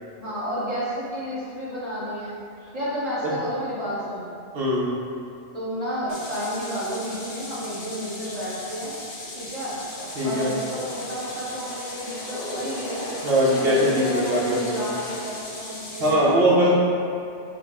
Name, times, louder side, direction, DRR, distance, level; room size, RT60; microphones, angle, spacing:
voice 1, 0.2-2.4 2.7-4.3 5.5-8.9 9.3-9.8 10.2-13.1 13.5-16.7, equal, 35° right, -10 dB, 1.2 m, -31 dB
voice 2, 4.5-5.0 10.2-10.5 13.2-14.9 16.0-16.7, equal, 55° right, -7 dB, 1.2 m, -21 dB
sound 1, 6.1-16.1, left 2 dB, 80° left, 1.3 m, -38 dB
sound 2, 10.0-15.4, equal, 55° left, 0.7 m, -37 dB
5.7 x 2.2 x 3.6 m, 2.5 s
omnidirectional pair, 1.2 m